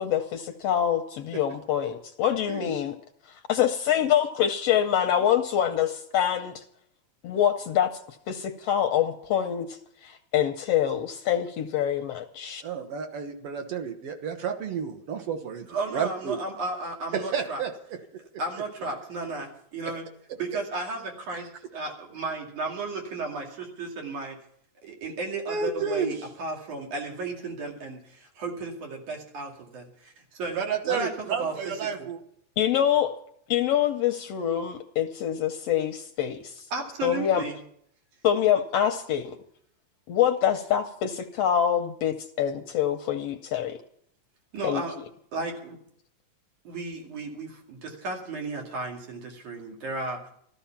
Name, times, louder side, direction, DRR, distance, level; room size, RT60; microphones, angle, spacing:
voice 1, 0.0-3.0 3.5-6.6 7.2-7.9 8.3-12.6 32.6-33.1 33.5-36.7 37.0-37.5 38.2-39.4 40.1-43.8 44.6-44.8, left 10 dB, 75° left, 7 dB, 1.5 m, -25 dB
voice 2, 12.6-16.4 17.1-18.0 25.5-26.2 30.5-32.2, right 6 dB, 60° right, 5 dB, 2.0 m, -31 dB
voice 3, 15.7-17.6 18.4-20.1 20.4-24.4 24.8-32.1 36.7-37.6 44.5-45.0 45.3-45.8 46.7-50.3, right 3 dB, 85° right, 1 dB, 3.8 m, -34 dB
14.0 x 13.5 x 5.8 m, 0.68 s
omnidirectional pair, 3.4 m